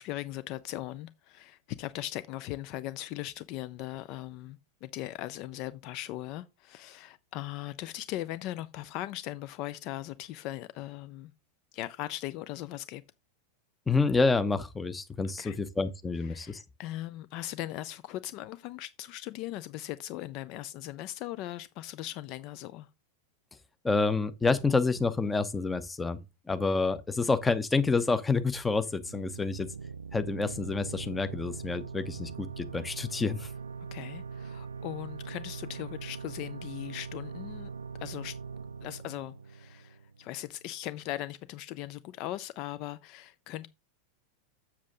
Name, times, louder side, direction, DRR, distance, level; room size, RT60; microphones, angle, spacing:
voice 1, 0.0-11.3 11.7-13.0 15.2-15.6 16.2-22.9 33.9-37.7 38.0-38.3 38.8-43.7, left 14 dB, 40° left, 0.4 m, -39 dB
voice 2, 13.9-16.6 23.8-26.2 26.5-29.7 30.1-33.5, left 4 dB, 10° left, 0.8 m, -28 dB
sound 1, 29.0-40.4, right 5 dB, 75° right, 0.3 m, -42 dB
7.3 x 7.1 x 3.8 m
figure-of-eight pair, 90°, 0 cm